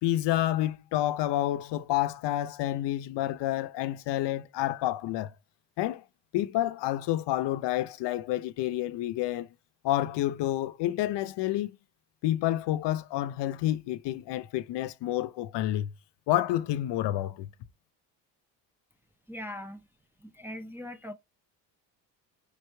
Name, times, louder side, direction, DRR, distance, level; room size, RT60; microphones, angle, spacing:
voice 1, 0.0-5.3 5.8-6.0 6.3-9.5 9.8-11.8 12.2-15.9 16.3-17.5, left 14 dB, 65° left, 0.6 m, -29 dB
voice 2, 19.3-19.9 20.2-21.1, left 1 dB, 5° right, 0.5 m, -40 dB
5.3 x 3.0 x 3.3 m
cardioid pair, 100°, 46 cm